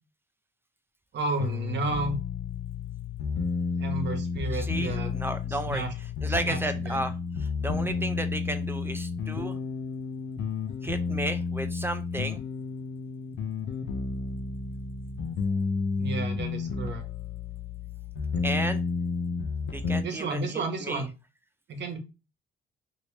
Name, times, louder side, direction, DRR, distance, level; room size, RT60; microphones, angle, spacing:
voice 1, 1.1-2.2 3.8-5.1 5.7-5.9 6.4-6.6 6.9-7.0 16.0-17.0 20.0-21.1 21.7-22.0, right 3 dB, 60° right, 6 dB, 1.0 m, -32 dB
sound 1, 1.4-20.0, left 5 dB, 70° left, 0.6 m, -31 dB
voice 2, 4.5-9.6 10.8-12.4 18.4-18.8 19.7-21.1, right 1 dB, 10° right, 9 dB, 0.5 m, -33 dB
3.0 x 2.8 x 3.2 m, 0.28 s
cardioid pair, 90°, 20 cm